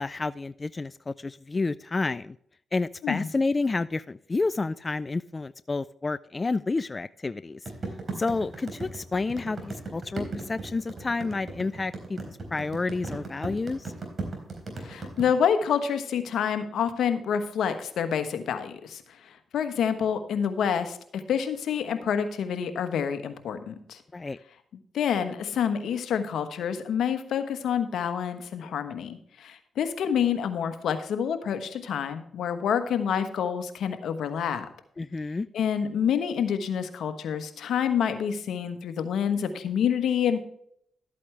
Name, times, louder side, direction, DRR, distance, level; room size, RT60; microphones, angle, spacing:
voice 1, 0.0-2.4 2.7-7.6 8.2-13.9 24.1-24.4 35.0-35.5, left 3 dB, 30° left, 15 dB, 0.3 m, -30 dB
sound 1, 7.7-15.2, right 3 dB, 45° right, 4.0 m, -36 dB
voice 2, 14.8-24.0 24.9-34.6 35.5-40.4, left 8 dB, 80° left, 9 dB, 1.2 m, -28 dB
12.5 x 8.5 x 3.3 m, 0.68 s
cardioid pair, 65°, 0 cm